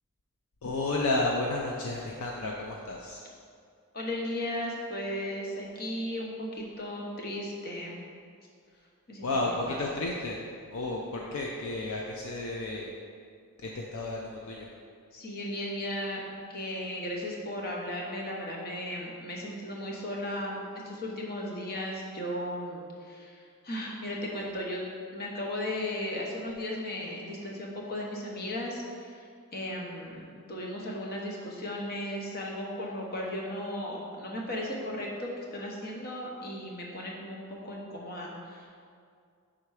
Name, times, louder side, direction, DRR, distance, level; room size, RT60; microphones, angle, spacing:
voice 1, 0.6-3.2 9.2-10.4 10.7-12.9 13.6-14.7, left 2 dB, 65° left, -1 dB, 0.5 m, -32 dB
voice 2, 3.9-8.0 9.1-9.8 15.1-20.6 20.8-24.8 25.1-29.3 29.5-38.8, left 1 dB, 45° left, -2 dB, 0.9 m, -36 dB
5.6 x 3.8 x 4.7 m, 2.2 s
head